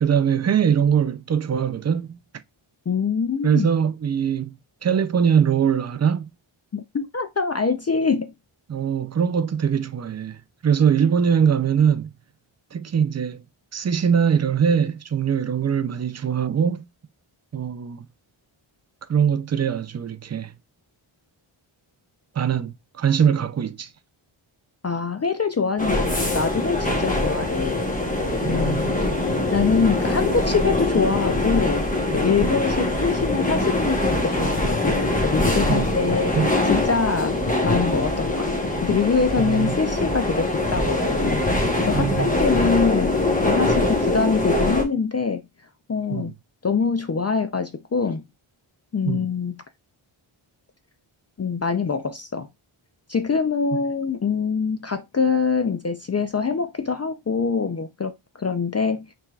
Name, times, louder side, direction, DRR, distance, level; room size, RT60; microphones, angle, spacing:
voice 1, 0.0-2.2 3.4-6.3 8.7-12.1 12.7-13.4 13.7-16.9 17.5-18.1 19.1-20.5 22.4-23.9 28.4-28.9 32.4-32.6 35.7-36.0 36.3-36.5 39.4-39.8 41.9-42.4 46.1-46.3 49.1-49.3, right 7 dB, 35° right, 0.4 m, -22 dB
voice 2, 2.9-3.7 6.7-8.3 24.8-27.8 28.1-29.1 29.5-31.8 32.1-45.4 45.9-46.3 46.6-48.2 48.9-49.6 51.4-52.5 53.1-58.1 58.4-59.0, left 5 dB, 35° left, 0.4 m, -24 dB
sound 1, 25.8-44.8, left 2 dB, 15° left, 1.0 m, -23 dB
5.7 x 3.3 x 2.3 m
wide cardioid pair, 95°, 50 cm